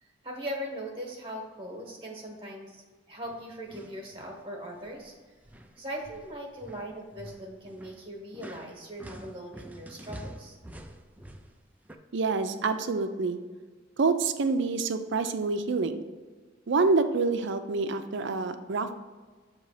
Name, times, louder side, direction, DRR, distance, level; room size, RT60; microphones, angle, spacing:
voice 1, 0.0-5.1 5.8-10.6, equal, 30° right, 0 dB, 1.1 m, -40 dB
sound 1, 3.2-4.4 4.7-5.1 5.4-12.0, right 1 dB, 10° right, 0.4 m, -47 dB
voice 2, 12.1-13.4 14.0-16.0 16.7-18.9, right 4 dB, 65° right, 9 dB, 0.5 m, -27 dB
7.7 x 3.0 x 4.9 m, 1.4 s
head